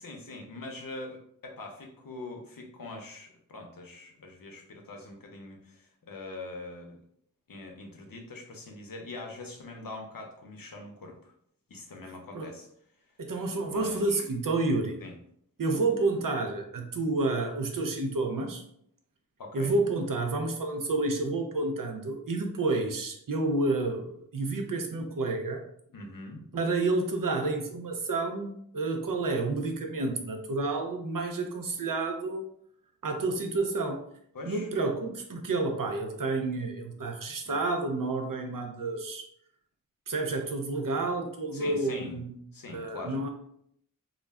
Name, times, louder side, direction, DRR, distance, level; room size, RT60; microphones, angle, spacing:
voice 1, 0.0-7.0 7.5-11.3 11.7-12.7 13.6-14.2 15.0-15.1 19.4-19.7 25.9-26.4 34.3-34.7 37.5-37.6 41.5-42.2 42.5-43.2, left 2 dB, 85° left, 2 dB, 0.6 m, -43 dB
voice 2, 13.2-15.0 15.6-18.6 19.5-25.6 26.5-32.4 33.0-34.0 34.5-39.2 40.1-42.3 42.7-43.3, right 3 dB, 75° right, 5 dB, 0.5 m, -30 dB
2.3 x 2.1 x 3.4 m, 0.69 s
wide cardioid pair, 50°, 33 cm